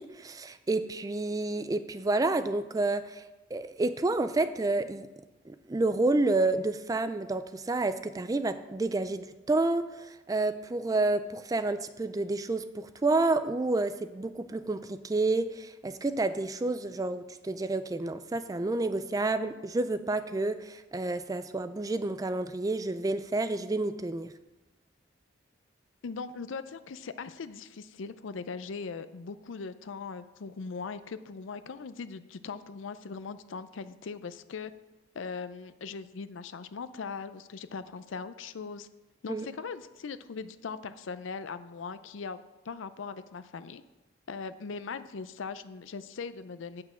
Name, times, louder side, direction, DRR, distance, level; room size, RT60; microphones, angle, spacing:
voice 1, 0.0-3.2 3.5-5.1 5.5-24.3 39.3-39.5, right 2 dB, 20° right, 11 dB, 0.3 m, -29 dB
voice 2, 26.0-34.7 35.1-38.9 39.2-42.4 42.6-43.8 44.3-46.8, left 5 dB, 80° left, 12 dB, 0.5 m, -40 dB
8.8 x 5.9 x 6.1 m, 1.1 s
head